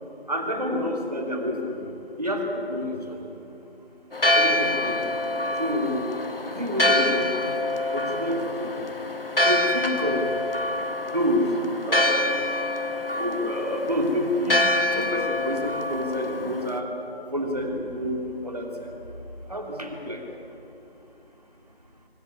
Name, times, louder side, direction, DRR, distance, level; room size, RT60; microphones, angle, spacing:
voice 1, 0.3-1.8 2.2-3.3 4.3-5.0 5.6-6.0 6.5-7.6 7.9-8.8 9.4-10.3 11.1-11.5 11.8-12.3 13.2-16.9 17.3-18.9 19.5-20.2, equal, 40° right, 1 dB, 2.9 m, -28 dB
Church bell, 4.1-16.8, left 1 dB, 65° left, 1.4 m, -26 dB
24.0 x 14.5 x 9.7 m, 3.0 s
figure-of-eight pair, 180°, 31 cm